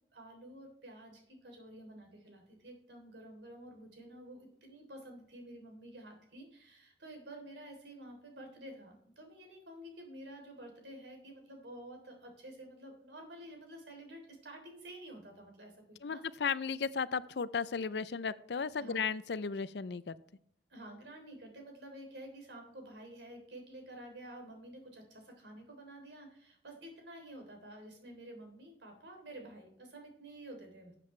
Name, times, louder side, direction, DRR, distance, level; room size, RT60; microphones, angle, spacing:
voice 1, 0.1-16.2 18.8-19.0 20.7-30.9, right 1 dB, 90° right, 3 dB, 3.4 m, -50 dB
voice 2, 16.0-20.2, left 5 dB, 80° left, 17 dB, 0.5 m, -35 dB
13.0 x 7.7 x 3.3 m, 0.68 s
head